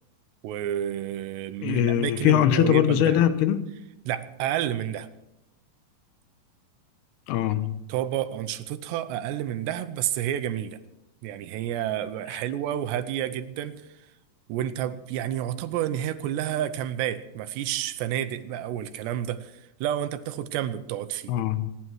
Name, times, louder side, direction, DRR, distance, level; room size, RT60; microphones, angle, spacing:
voice 1, 0.4-3.2 4.1-5.1 7.4-7.5 7.9-10.8 11.2-13.8 14.5-19.5 19.8-21.3, right 11 dB, 85° right, 2.9 m, -30 dB
voice 2, 1.6-3.7 7.3-7.8 21.3-21.7, left 11 dB, 75° left, 2.6 m, -22 dB
26.0 x 9.8 x 4.6 m
omnidirectional pair, 4.9 m